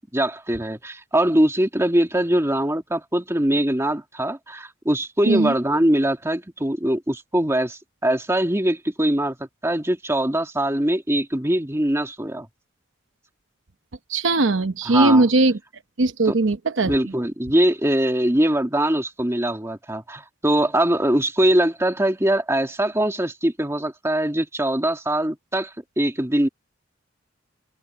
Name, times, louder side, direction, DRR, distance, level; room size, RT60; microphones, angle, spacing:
voice 1, 0.1-9.4 9.6-12.5 14.9-15.3 16.3-16.4 16.8-26.5, right 1 dB, 15° right, 2.1 m, -22 dB
voice 2, 14.1-15.6 16.0-16.9, right 2 dB, 70° right, 0.9 m, -19 dB
head